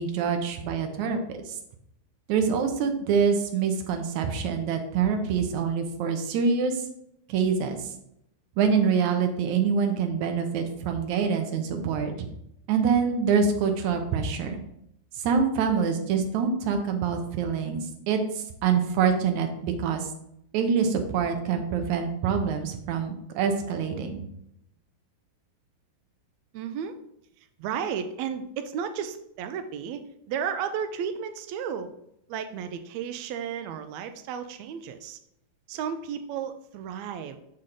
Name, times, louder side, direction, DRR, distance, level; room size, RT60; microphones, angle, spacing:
voice 1, 0.0-1.4 2.3-6.8 7.3-7.8 8.6-12.1 12.7-14.6 15.2-20.1 20.5-24.2, right 6 dB, 70° right, 5 dB, 2.1 m, -25 dB
voice 2, 26.5-27.0 27.6-30.0 30.3-31.9 32.3-35.2 35.7-37.4, right 7 dB, 90° right, 8 dB, 1.6 m, -33 dB
6.3 x 5.8 x 3.8 m, 0.77 s
omnidirectional pair, 3.8 m